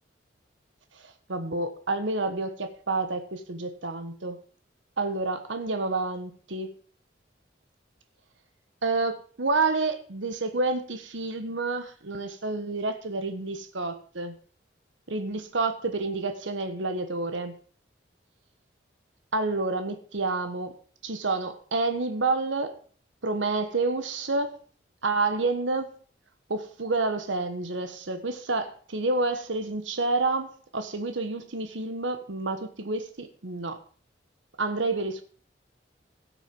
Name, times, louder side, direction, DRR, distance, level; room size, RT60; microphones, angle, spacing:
voice 1, 1.3-4.4 5.0-6.7 8.8-14.3 15.1-17.6 19.3-20.7 21.0-22.7 23.2-24.6 25.0-26.0 26.5-33.8 34.6-35.2, right 3 dB, 85° right, 1.2 m, -29 dB
17.0 x 6.3 x 5.3 m
head